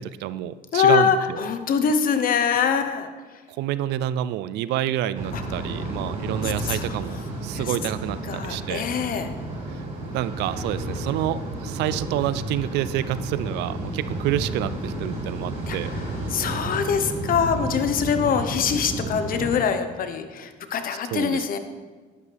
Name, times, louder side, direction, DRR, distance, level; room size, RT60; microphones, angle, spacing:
voice 1, 0.0-1.4 3.6-7.2 7.4-8.8 9.7-9.8 10.1-15.9 21.1-21.6, right 12 dB, 85° right, 15 dB, 0.4 m, -28 dB
voice 2, 0.7-3.1 5.3-5.9 6.4-7.0 7.5-7.7 8.2-9.3 15.7-21.6, left 7 dB, 55° left, 8 dB, 1.1 m, -24 dB
sound 1, 5.1-19.6, right 1 dB, 40° right, 3.6 m, -32 dB
11.0 x 11.0 x 3.5 m, 1.4 s
cardioid pair, 110°, 17 cm